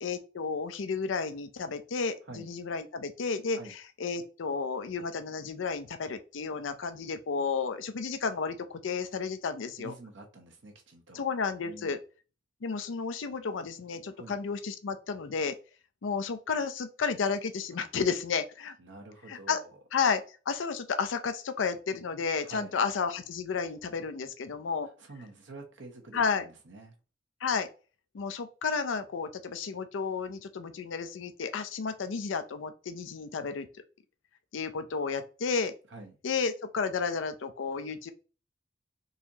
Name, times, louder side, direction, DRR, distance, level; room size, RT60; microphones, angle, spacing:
voice 1, 0.0-9.9 11.1-12.0 12.6-15.6 16.0-18.7 19.3-19.6 19.9-24.9 26.1-26.5 27.4-27.7 28.1-33.7 34.5-35.7 36.2-38.1, left 5 dB, 85° left, 10 dB, 0.5 m, -32 dB
voice 2, 9.8-11.2 11.6-12.0 14.2-14.4 18.8-19.7 22.4-22.8 25.0-26.9 35.9-36.2, right 2 dB, 75° right, 3 dB, 0.9 m, -47 dB
4.0 x 2.7 x 2.9 m, 0.34 s
head